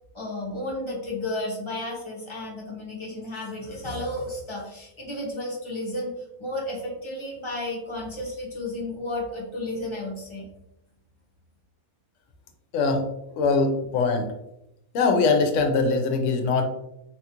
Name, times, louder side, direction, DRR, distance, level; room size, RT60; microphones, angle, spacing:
voice 1, 0.1-6.1 6.4-10.5, left 1 dB, 30° left, -3 dB, 0.6 m, -32 dB
voice 2, 12.7-13.0 13.3-14.3 14.9-16.6, left 4 dB, 65° left, 5 dB, 0.9 m, -22 dB
3.5 x 2.4 x 2.8 m, 0.85 s
omnidirectional pair, 1.5 m